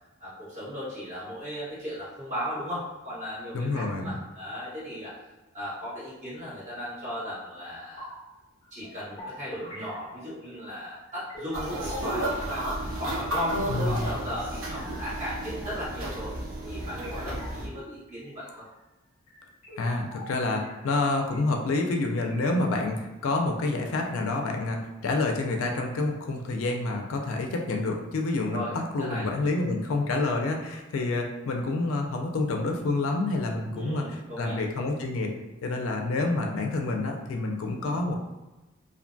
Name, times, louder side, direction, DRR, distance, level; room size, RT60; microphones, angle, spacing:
voice 1, 0.2-5.1 5.5-8.1 8.7-12.6 13.0-16.3 16.7-18.6 28.5-29.2 33.7-34.6, equal, 35° right, -11 dB, 1.3 m, -36 dB
voice 2, 3.5-4.2 13.7-14.1 19.8-34.0 34.4-35.3 35.6-38.1, left 2 dB, 75° left, 2 dB, 0.4 m, -28 dB
sound 1, 8.0-8.3 8.6-13.0 13.3-15.1 15.4-16.1 16.6-18.7 19.3-21.7 22.0-23.0, left 1 dB, 30° left, 1.0 m, -47 dB
sound 2, 11.5-17.7, right 1 dB, 75° right, 0.7 m, -32 dB
2.5 x 2.2 x 2.5 m, 1.1 s
head